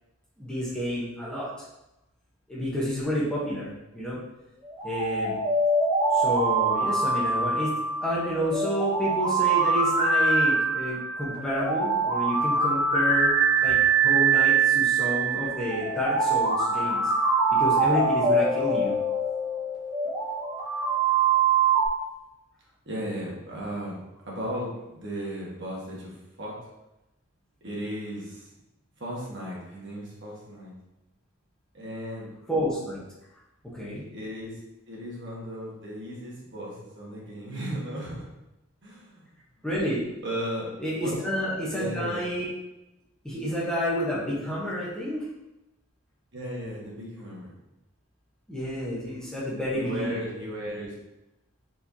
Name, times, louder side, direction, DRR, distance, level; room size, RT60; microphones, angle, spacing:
voice 1, 0.4-1.5 2.5-4.2 4.8-5.3 6.1-7.7 8.0-17.1 17.6-19.0 32.5-33.0 33.7-34.1 39.6-40.2 40.8-42.5 43.2-45.3 48.5-50.2, equal, 5° left, -8 dB, 1.0 m, -30 dB
sound 1, 4.7-21.9, right 4 dB, 20° right, 0.9 m, -24 dB
voice 2, 22.8-26.6 27.6-28.5 29.0-30.7 31.7-32.3 34.1-34.6 34.9-38.3 38.8-39.2 40.2-40.7 41.0-41.2 41.7-42.2 46.3-47.5 49.7-50.9, equal, 55° right, -4 dB, 1.3 m, -35 dB
4.4 x 4.4 x 2.8 m, 0.92 s
head